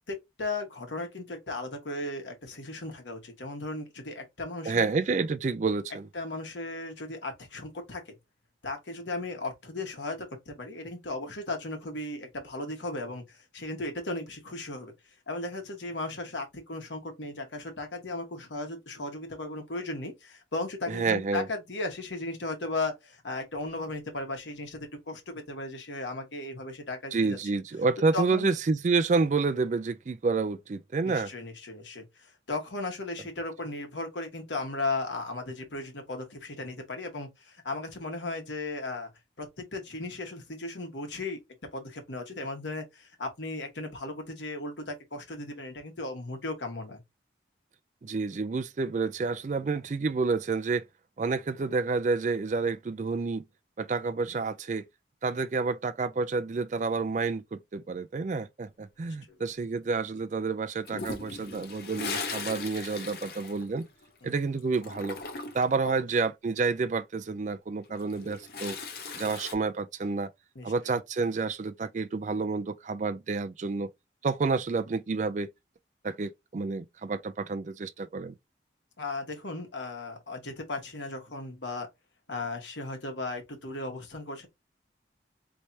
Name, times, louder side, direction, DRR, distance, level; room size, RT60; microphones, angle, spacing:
voice 1, 0.1-4.9 6.1-8.1 8.6-14.9 15.3-27.4 28.1-28.5 31.0-39.1 39.4-41.4 41.7-47.0 59.3-59.4 64.2-64.3 65.8-66.0 70.5-70.7 79.0-81.9 82.3-84.5, left 2 dB, 80° left, 1.4 m, -36 dB
voice 2, 4.7-6.1 20.9-21.5 27.1-31.3 48.0-50.8 51.2-53.4 53.8-54.9 55.2-63.9 64.2-65.2 65.5-68.8 69.1-70.3 70.6-73.9 74.2-75.5 76.0-78.3, right 4 dB, 40° right, 0.3 m, -29 dB
Toilet flush, 60.8-64.3 64.6-65.8 67.8-69.5, left 4 dB, 55° left, 0.8 m, -38 dB
4.5 x 3.3 x 2.7 m
head